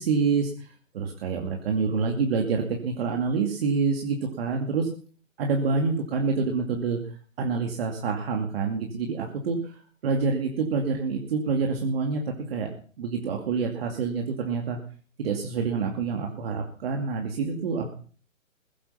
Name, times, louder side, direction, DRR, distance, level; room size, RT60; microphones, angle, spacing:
voice 1, 0.0-4.9 5.4-12.7 13.0-14.8 15.2-17.9, right 5 dB, 45° right, 2 dB, 2.5 m, -27 dB
21.5 x 8.5 x 5.6 m, 0.43 s
hypercardioid pair, 140°, 40 cm